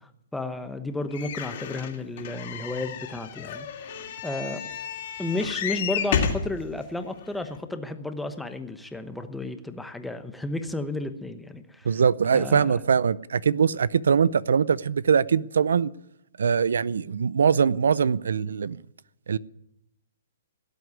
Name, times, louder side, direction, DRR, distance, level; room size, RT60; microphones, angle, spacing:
voice 1, 0.3-3.9 4.2-4.6 5.2-11.9 12.3-12.7, left 2 dB, 5° left, 8 dB, 1.0 m, -32 dB
sound 1, 1.1-6.5 7.2-7.3 7.5-7.6, left 7 dB, 45° left, 2.8 m, -31 dB
voice 2, 11.9-15.9 16.4-18.8 19.3-19.4, right 6 dB, 85° right, 21 dB, 0.6 m, -22 dB
17.0 x 7.9 x 9.6 m, 0.80 s
hypercardioid pair, 160°, 0 cm